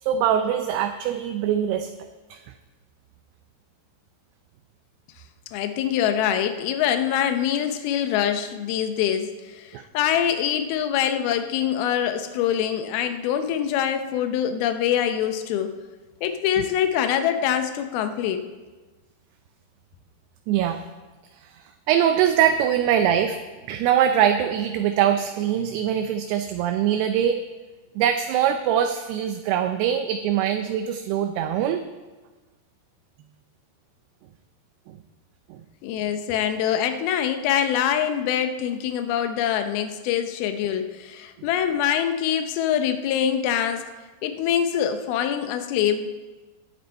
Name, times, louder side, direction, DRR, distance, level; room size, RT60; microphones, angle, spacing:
voice 1, 0.0-1.9 2.3-2.4 9.7-9.8 16.6-16.7 20.5-20.8 21.4-23.4 23.7-27.4 28.0-31.8 35.5-35.6, right 9 dB, 80° right, 7 dB, 2.5 m, -23 dB
voice 2, 5.5-15.7 16.2-18.5 35.8-43.9 44.2-46.1, left 9 dB, 75° left, 8 dB, 2.5 m, -24 dB
19.5 x 8.1 x 4.5 m, 1.2 s
omnidirectional pair, 5.0 m